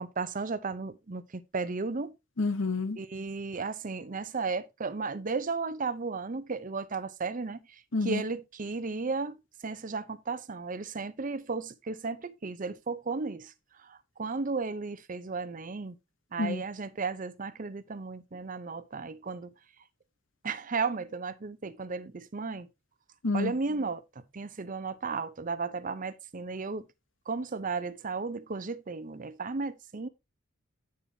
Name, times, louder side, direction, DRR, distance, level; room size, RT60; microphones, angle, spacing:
voice 1, 0.0-2.2 3.0-7.6 8.0-13.5 13.8-16.0 16.3-19.5 20.4-22.7 23.3-24.0 24.3-26.9 27.3-30.1, right 4 dB, 45° right, 0.7 m, -34 dB
voice 2, 2.4-3.0 7.9-8.2 16.4-16.6 23.2-23.5, left 3 dB, 70° left, 1.0 m, -28 dB
8.9 x 6.9 x 2.8 m
head